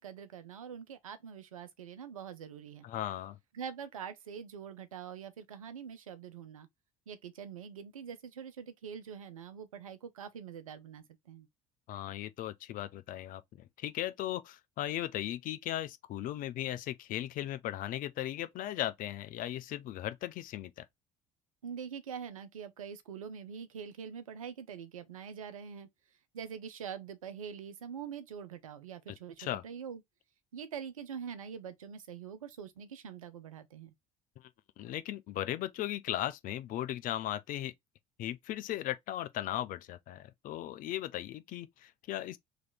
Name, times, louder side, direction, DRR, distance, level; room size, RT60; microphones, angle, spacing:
voice 1, 0.0-2.9 3.5-6.7 7.1-11.5 21.6-25.9 26.3-30.0 30.5-33.9, right 7 dB, 85° right, 0.6 m, -44 dB
voice 2, 2.8-3.4 11.9-20.9 29.4-29.6 34.4-34.5 34.8-37.7 38.2-42.4, left 13 dB, 50° left, 0.6 m, -37 dB
3.2 x 2.9 x 3.8 m
hypercardioid pair, 60°, 17 cm